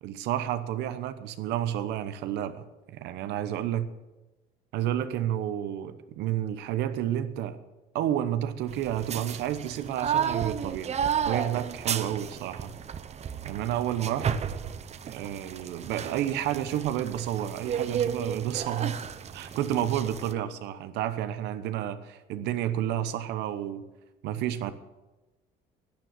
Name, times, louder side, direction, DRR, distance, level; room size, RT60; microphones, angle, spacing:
voice 1, 0.0-3.9 4.7-7.6 7.9-10.9 11.2-12.7 13.4-14.3 15.0-19.0 19.3-23.8 24.2-24.7, right 11 dB, 85° right, 0.9 m, -30 dB
sound 1, 8.7-20.3, right 8 dB, 40° right, 0.8 m, -33 dB
12.0 x 9.3 x 7.7 m
cardioid pair, 110°, 17 cm